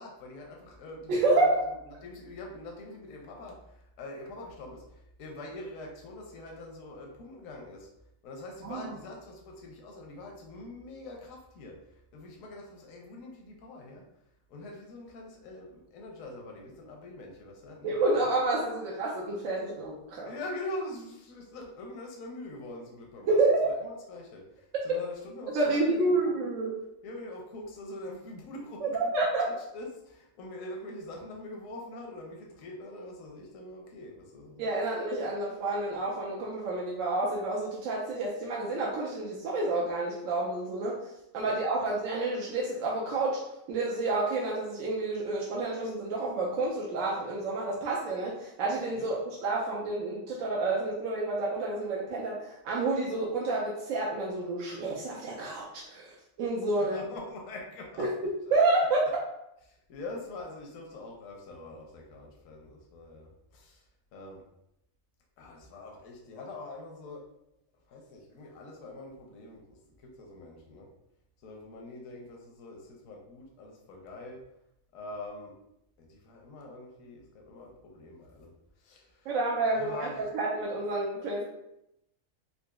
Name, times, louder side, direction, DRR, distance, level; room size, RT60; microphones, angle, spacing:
voice 1, 0.0-1.6 1.9-7.9 8.2-11.7 12.1-14.0 14.5-18.3 20.3-23.4 23.6-26.4 27.0-29.1 29.5-34.7 41.4-41.9 48.9-49.1 56.8-58.1 58.4-58.6 59.7-63.8 64.1-64.4 65.4-67.2 67.9-70.9 71.4-74.4 74.9-75.5 76.0-78.5 78.8-79.3 79.7-80.2, left 2 dB, 80° left, 0 dB, 1.0 m, -44 dB
voice 2, 1.1-1.6 8.6-8.9 17.8-20.3 23.3-23.7 25.5-26.7 28.8-29.5 34.6-41.0 41.3-43.4 43.7-57.0 58.0-58.1 58.5-59.1 79.3-81.4, right 2 dB, 80° right, -3 dB, 1.0 m, -29 dB
3.9 x 2.6 x 2.3 m, 0.82 s
omnidirectional pair, 1.4 m